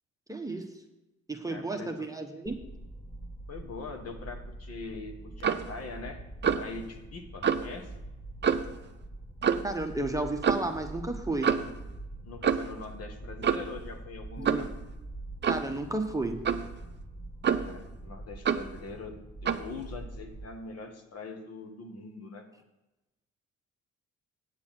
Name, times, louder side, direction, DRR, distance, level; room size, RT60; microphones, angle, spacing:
voice 1, 0.3-0.7 1.3-2.6 9.6-11.5 14.4-14.6 15.5-16.4, right 2 dB, 10° right, 4 dB, 0.9 m, -32 dB
voice 2, 1.5-2.1 3.5-6.2 6.6-7.9 12.2-14.7 17.5-22.5, left 4 dB, 55° left, 5 dB, 1.5 m, -42 dB
sound 1, 2.5-20.4, right 2 dB, 15° left, 1.4 m, -44 dB
Clock, 5.4-5.7 6.4-6.7 7.4-7.7 8.4-8.8 9.4-9.7 10.4-10.7 11.4-11.7 12.4-12.8 13.4-13.8 14.4-14.7 15.4-15.7 16.4-16.7 17.4-17.8 18.4-18.7 19.4-19.7, right 7 dB, 35° right, 0.6 m, -27 dB
8.9 x 7.0 x 5.8 m, 1.0 s
cardioid pair, 90°, 30 cm